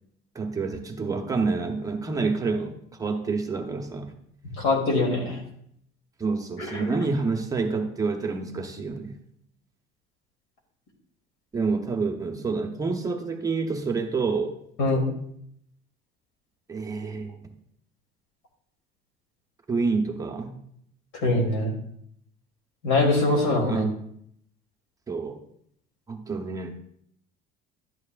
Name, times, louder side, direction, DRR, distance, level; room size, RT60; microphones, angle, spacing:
voice 1, 0.3-4.1 6.2-9.1 11.5-14.5 16.7-17.5 19.7-20.5 23.7-24.0 25.1-25.4 26.1-26.7, right 4 dB, 15° right, 3 dB, 0.7 m, -28 dB
voice 2, 4.6-5.4 6.7-6.9 14.8-15.1 21.1-21.7 22.8-23.8, left 2 dB, 90° left, 1 dB, 2.9 m, -23 dB
12.0 x 9.3 x 2.4 m, 0.70 s
cardioid pair, 160°, 21 cm